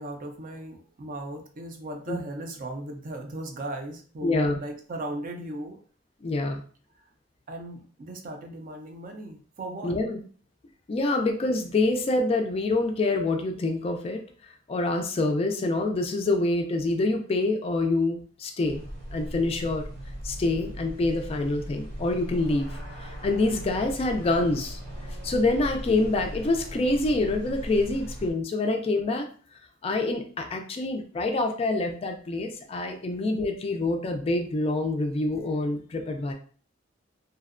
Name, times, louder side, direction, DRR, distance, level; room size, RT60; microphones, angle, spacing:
voice 1, 0.0-5.8 7.0-7.1 7.5-10.0, right 1 dB, 45° right, 4 dB, 0.4 m, -37 dB
voice 2, 4.2-4.6 6.2-6.6 9.8-10.2 10.9-14.2 14.7-18.8 19.1-19.9 20.2-22.8 23.2-24.8 25.2-29.3 29.8-36.3, left 2 dB, 30° left, 4 dB, 0.3 m, -26 dB
sound 1, 18.6-28.3, equal, 80° right, 1.0 m, -38 dB
2.7 x 2.1 x 2.4 m, 0.43 s
head